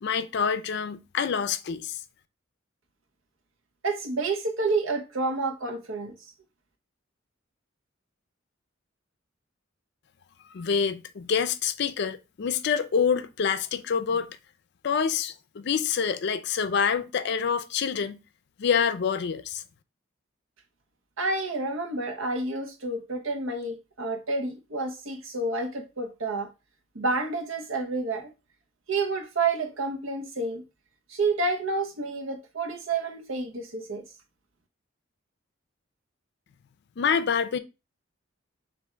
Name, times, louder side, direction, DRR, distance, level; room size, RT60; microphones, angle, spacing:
voice 1, 0.0-2.0 10.5-14.3 14.8-18.2 18.6-19.6 37.0-37.6, left 6 dB, 60° left, 0.4 m, -26 dB
voice 2, 3.8-6.3 21.2-26.5 26.9-28.3 28.9-30.6 31.1-34.0, right 3 dB, 90° right, 0.9 m, -29 dB
3.5 x 2.6 x 4.3 m
head